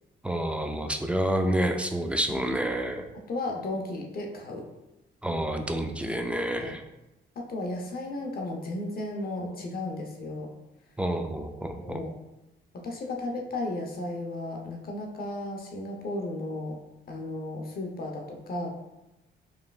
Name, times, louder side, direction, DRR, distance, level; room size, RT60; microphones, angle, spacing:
voice 1, 0.2-3.0 5.2-6.8 11.0-12.0, right 1 dB, 5° right, 5 dB, 0.3 m, -28 dB
voice 2, 3.1-4.7 6.6-6.7 7.4-10.5 11.8-12.1 12.8-16.8 17.1-18.7, left 2 dB, 50° left, 1 dB, 0.7 m, -34 dB
4.8 x 3.2 x 2.3 m, 0.96 s
cardioid pair, 90°, 20 cm